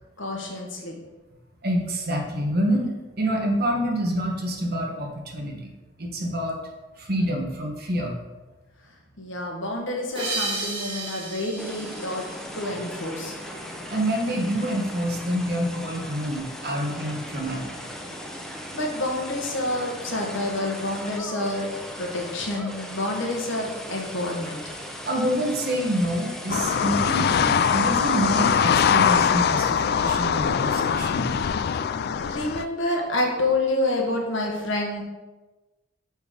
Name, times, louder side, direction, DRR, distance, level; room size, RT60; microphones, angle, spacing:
voice 1, 0.2-0.9 9.2-12.2 12.5-13.6 18.5-21.7 21.9-24.6 32.1-35.0, left 2 dB, 70° left, 0 dB, 1.4 m, -28 dB
voice 2, 1.6-5.7 6.0-6.6 7.0-8.1 13.8-17.8 25.0-31.3, equal, 50° right, 1 dB, 1.4 m, -27 dB
sound 1, 10.1-13.2, right 3 dB, 25° right, 2.6 m, -33 dB
sound 2, 11.6-28.5, equal, 5° left, 0.7 m, -38 dB
sound 3, 26.5-32.6, left 7 dB, 50° left, 0.3 m, -22 dB
6.2 x 5.4 x 5.1 m, 1.2 s
head